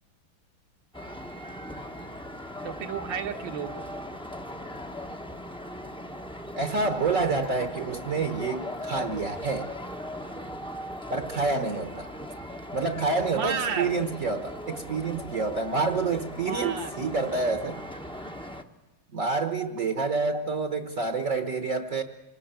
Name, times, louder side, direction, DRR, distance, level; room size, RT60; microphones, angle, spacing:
sound 1, 0.9-18.6, equal, 5° left, 0.8 m, -39 dB
voice 1, 2.6-3.8 7.7-7.8 13.3-13.9 16.4-17.0 20.1-20.3, right 6 dB, 65° right, 6 dB, 1.8 m, -32 dB
voice 2, 6.5-9.7 11.1-12.1 12.7-17.8 19.1-22.0, right 4 dB, 45° right, 7 dB, 1.3 m, -28 dB
26.0 x 19.5 x 8.9 m, 1.1 s
omnidirectional pair, 2.3 m